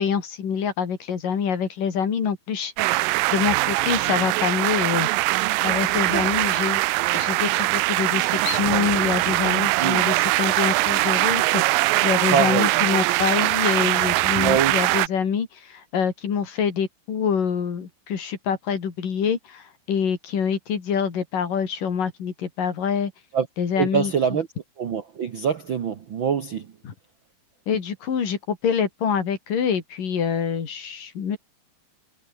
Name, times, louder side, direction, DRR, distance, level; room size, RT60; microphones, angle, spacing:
voice 1, 0.0-5.1 5.6-6.9 7.1-23.1 23.6-24.4 26.8-26.9 27.7-31.4, left 7 dB, 70° left, 4.9 m, -26 dB
sound 1, 2.8-15.1, right 21 dB, 90° right, 2.3 m, -22 dB
voice 2, 12.3-12.7 14.4-14.8 23.3-23.5 23.8-24.5 24.8-26.7, right 7 dB, 60° right, 1.3 m, -24 dB
omnidirectional pair, 3.9 m